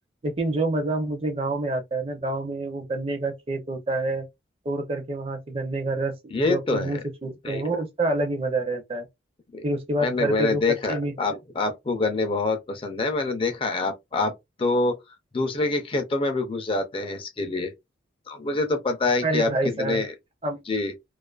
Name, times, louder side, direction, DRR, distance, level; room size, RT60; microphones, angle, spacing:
voice 1, 0.2-4.3 4.7-9.1 9.6-10.6 10.9-11.1 19.2-20.0 20.4-20.6, right 2 dB, 30° right, 0.5 m, -27 dB
voice 2, 6.3-7.0 7.4-7.6 9.5-9.6 10.0-14.3 14.6-15.0 15.3-17.7 18.3-19.5 19.8-20.1 20.7-20.9, left 3 dB, 30° left, 0.4 m, -25 dB
2.4 x 2.3 x 2.3 m
head